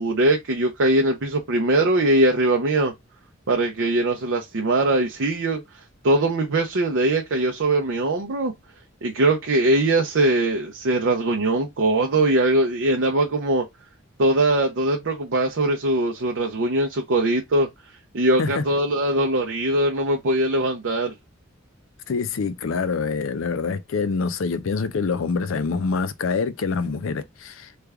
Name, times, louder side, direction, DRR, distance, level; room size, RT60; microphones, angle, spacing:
voice 1, 0.0-2.9 3.5-5.6 6.0-8.5 9.0-13.6 14.2-17.7 18.1-21.1, right 1 dB, 65° right, 0.6 m, -21 dB
voice 2, 22.1-27.7, left 4 dB, 75° left, 0.5 m, -25 dB
3.3 x 2.3 x 3.4 m
head